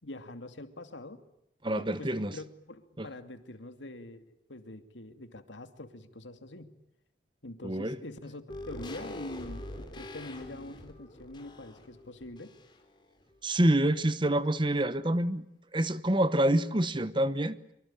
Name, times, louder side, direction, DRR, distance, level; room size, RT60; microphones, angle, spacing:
voice 1, 0.0-1.2 1.8-6.7 7.4-12.5, left 1 dB, 90° left, 2.6 m, -44 dB
voice 2, 1.6-2.3 3.0-3.1 7.6-8.0 13.4-15.4 15.7-17.6, right 1 dB, 25° right, 1.0 m, -27 dB
sound 1, 8.5-13.0 13.3-13.4, left 1 dB, 25° left, 3.7 m, -44 dB
25.0 x 24.5 x 8.9 m
head